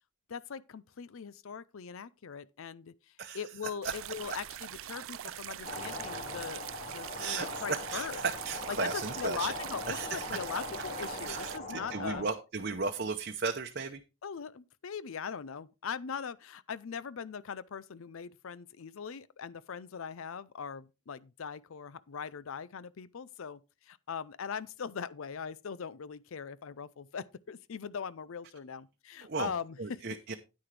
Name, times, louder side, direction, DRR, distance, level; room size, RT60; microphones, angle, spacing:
voice 1, 0.3-2.9 3.3-6.6 6.9-8.2 8.7-12.2 14.2-23.6 23.9-30.1, left 6 dB, 75° left, 0.5 m, -40 dB
sound 1, 3.8-11.6, right 12 dB, 75° right, 0.4 m, -43 dB
sound 2, 5.6-12.3, left 1 dB, 35° left, 2.2 m, -41 dB
voice 2, 7.2-9.5 9.9-10.5 11.2-14.0 29.2-29.5 29.8-30.3, right 4 dB, 50° right, 0.8 m, -35 dB
9.7 x 9.6 x 3.3 m
head